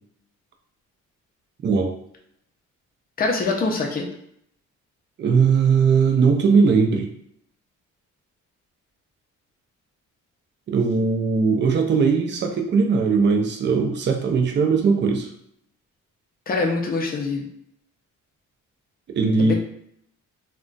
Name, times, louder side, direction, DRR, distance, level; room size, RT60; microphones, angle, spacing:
voice 1, 1.6-2.0 5.2-7.1 10.7-15.3 19.1-19.5, right 5 dB, 35° right, 3 dB, 0.4 m, -19 dB
voice 2, 3.2-4.1 16.5-17.4 19.4-19.5, left 3 dB, 30° left, 1 dB, 0.5 m, -24 dB
2.3 x 2.2 x 3.8 m, 0.70 s
cardioid pair, 145°, 32 cm